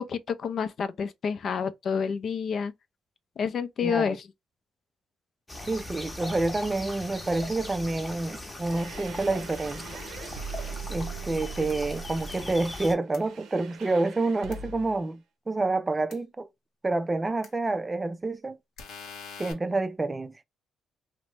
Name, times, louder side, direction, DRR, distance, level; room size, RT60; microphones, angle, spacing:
voice 1, 0.0-2.7 3.4-4.3, left 6 dB, 55° left, 0.4 m, -29 dB
voice 2, 3.8-4.2 5.6-10.0 10.9-15.2 15.5-16.5 16.8-18.6 19.4-20.5, right 2 dB, 20° right, 0.3 m, -28 dB
sound 1, 5.5-13.0, left 2 dB, 20° left, 0.8 m, -39 dB
sound 2, 8.6-15.0, right 5 dB, 80° right, 0.6 m, -41 dB
sound 3, 11.7-11.8 13.1-13.2 14.5-14.6 16.1-16.2 17.4-17.5 18.8-19.5, left 5 dB, 80° left, 0.7 m, -43 dB
2.9 x 2.0 x 3.1 m
cardioid pair, 90°, 0 cm